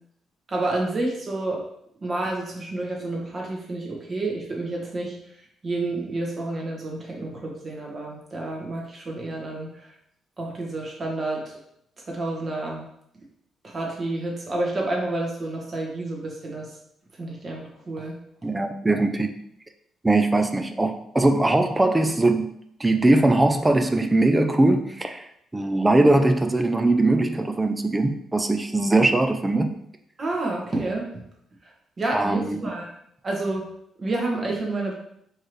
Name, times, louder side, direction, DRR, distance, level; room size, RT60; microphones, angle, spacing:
voice 1, 0.5-1.6 2.0-5.2 5.6-9.9 10.4-11.5 12.1-12.9 13.6-16.7 17.2-18.2 30.2-31.1 32.0-32.9 33.2-33.7 34.0-34.9, right 2 dB, 35° right, -2 dB, 1.3 m, -29 dB
voice 2, 18.4-19.3 20.0-22.5 22.8-25.3 25.5-29.7 32.1-32.6, right 2 dB, 15° right, 7 dB, 0.4 m, -21 dB
4.5 x 3.1 x 3.1 m, 0.72 s
cardioid pair, 90°, 0 cm